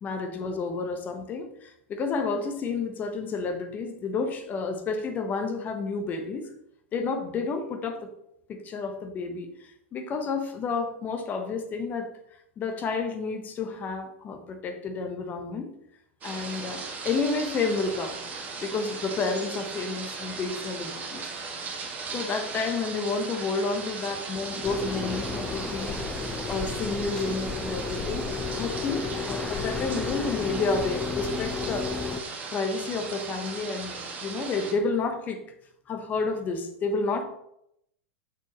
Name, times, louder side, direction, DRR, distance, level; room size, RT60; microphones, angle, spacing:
voice 1, 0.0-6.5 6.9-8.1 8.5-12.1 12.6-15.7 16.2-18.2 18.6-21.6 22.1-26.0 26.5-28.2 28.6-31.9 32.5-35.4 35.9-37.3, left 4 dB, 25° left, 7 dB, 0.9 m, -30 dB
sound 1, 16.2-34.7, right 4 dB, 25° right, 1.7 m, -37 dB
sound 2, 24.6-32.2, left 4 dB, 10° left, 0.6 m, -32 dB
6.4 x 6.0 x 3.0 m, 0.77 s
figure-of-eight pair, 95°, 6 cm